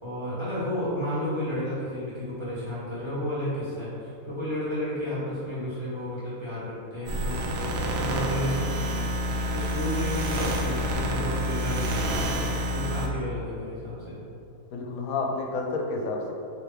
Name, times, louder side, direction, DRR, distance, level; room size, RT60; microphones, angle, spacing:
voice 1, 0.0-14.2, left 1 dB, 20° right, -12 dB, 1.3 m, -32 dB
sound 1, 7.1-13.1, equal, 65° right, 0.7 m, -28 dB
voice 2, 14.7-16.3, left 3 dB, 90° left, 0 dB, 1.0 m, -30 dB
3.4 x 2.8 x 4.3 m, 2.6 s
omnidirectional pair, 1.4 m